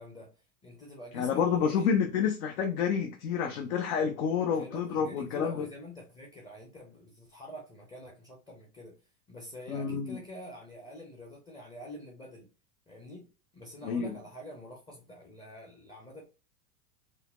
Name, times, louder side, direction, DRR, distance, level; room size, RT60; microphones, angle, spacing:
voice 1, 0.0-1.9 4.5-9.0 9.3-12.5 12.9-13.3 13.5-16.2, left 1 dB, 15° left, 0.6 m, -46 dB
voice 2, 1.1-5.6 9.7-10.2 13.8-14.1, left 7 dB, 70° left, 0.7 m, -29 dB
3.9 x 2.0 x 2.3 m
hypercardioid pair, 110°, 45 cm